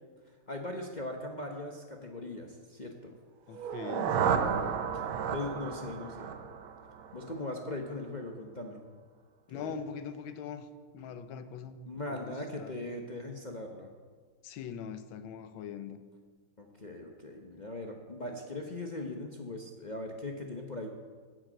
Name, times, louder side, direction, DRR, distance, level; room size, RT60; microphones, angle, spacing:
voice 1, 0.5-3.1 4.3-5.0 5.3-6.4 7.1-8.8 9.5-9.8 11.8-13.9 16.6-20.9, left 2 dB, 45° left, 1 dB, 0.6 m, -40 dB
voice 2, 3.5-4.5 9.5-10.7 10.9-11.8 12.1-12.3 12.6-12.8 14.4-16.0, left 7 dB, 80° left, 11 dB, 1.5 m, -42 dB
sound 1, 3.5-7.5, right 7 dB, 85° right, 1.6 m, -32 dB
9.7 x 7.9 x 7.7 m, 1.5 s
omnidirectional pair, 2.2 m